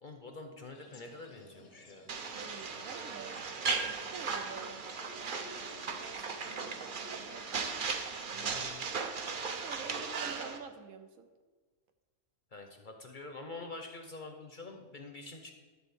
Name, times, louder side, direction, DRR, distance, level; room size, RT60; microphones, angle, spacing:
voice 1, 0.0-2.1 8.3-8.8 9.9-10.3 12.5-15.5, left 3 dB, 45° left, 4 dB, 0.8 m, -47 dB
sound 1, 0.7-7.4, left 1 dB, 85° left, 1.9 m, -55 dB
sound 2, 2.1-10.6, right 5 dB, 45° right, 0.8 m, -37 dB
voice 2, 2.3-3.4 3.9-4.8 6.0-7.3 7.8-7.9 8.3-8.7 9.6-11.3, right 6 dB, 75° right, 7 dB, 1.2 m, -48 dB
11.5 x 4.2 x 7.0 m, 1.4 s
omnidirectional pair, 1.5 m